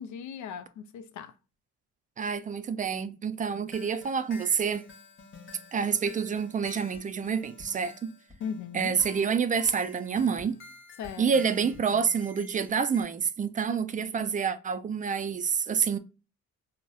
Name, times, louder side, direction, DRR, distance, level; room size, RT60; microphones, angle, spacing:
voice 1, 0.0-1.3 8.4-9.0 11.0-11.3 13.9-14.2, left 7 dB, 70° left, 0.5 m, -38 dB
voice 2, 2.2-4.9 5.7-8.1 8.7-10.6 11.2-16.0, right 6 dB, 25° right, 0.3 m, -28 dB
sound 1, 3.7-13.0, left 4 dB, 40° left, 0.8 m, -50 dB
sound 2, 6.9-7.0 7.6-7.7 8.3-8.4 8.9-9.1 9.6-9.7 10.3-10.4 11.0-11.1 11.6-11.8, left 2 dB, 15° left, 0.9 m, -50 dB
3.9 x 2.1 x 2.3 m
cardioid pair, 90°, 30 cm